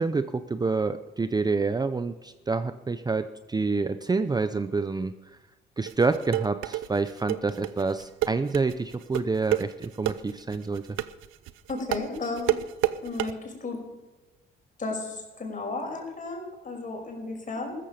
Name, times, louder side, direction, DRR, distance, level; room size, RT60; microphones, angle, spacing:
voice 1, 0.0-5.1 5.8-10.8, right 4 dB, 20° right, 11 dB, 0.6 m, -27 dB
sound 1, 5.9-13.3, right 13 dB, 90° right, 0.6 m, -29 dB
voice 2, 11.7-12.6 12.9-13.8 14.8-17.8, left 3 dB, 40° left, 2 dB, 5.4 m, -34 dB
15.0 x 13.5 x 5.2 m, 1.1 s
cardioid pair, 90°, 20 cm